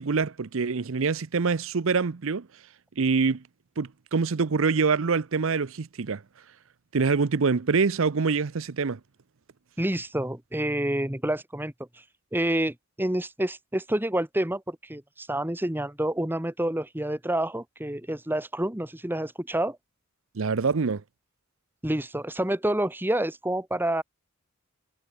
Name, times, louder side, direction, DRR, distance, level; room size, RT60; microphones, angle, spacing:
voice 1, 0.0-2.5 3.0-3.4 3.8-6.2 6.9-9.0 20.3-21.0, right 4 dB, 65° right, 0.6 m, -25 dB
voice 2, 9.8-11.7 12.3-19.8 21.8-24.0, right 1 dB, 10° right, 1.3 m, -28 dB
head